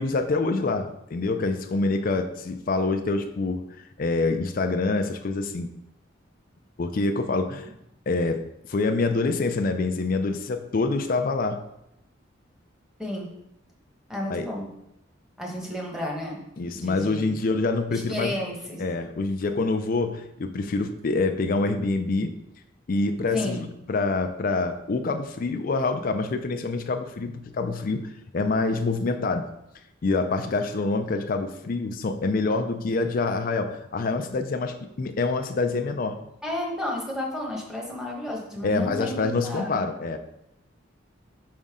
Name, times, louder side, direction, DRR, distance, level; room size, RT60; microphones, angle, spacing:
voice 1, 0.0-3.7 4.0-5.7 6.8-7.7 8.1-8.4 8.7-11.6 14.3-14.5 16.6-18.3 18.8-22.3 22.9-29.5 30.0-36.2 38.6-40.2, left 3 dB, 45° left, 7 dB, 0.4 m, -26 dB
voice 2, 14.1-14.7 15.4-16.4 16.7-17.4 17.9-18.8 23.3-23.6 36.4-39.9, left 1 dB, ahead, -2 dB, 1.1 m, -32 dB
5.3 x 5.1 x 3.6 m, 0.81 s
head